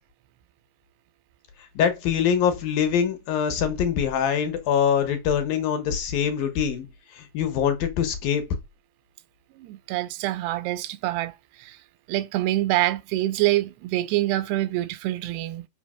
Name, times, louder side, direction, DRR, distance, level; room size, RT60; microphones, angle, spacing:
voice 1, 1.8-6.9 7.1-8.6, left 8 dB, 65° left, 2.7 m, -24 dB
voice 2, 9.6-11.3 11.6-11.8 12.1-15.7, right 16 dB, 80° right, 2.6 m, -25 dB
6.4 x 5.5 x 6.2 m
omnidirectional pair, 4.8 m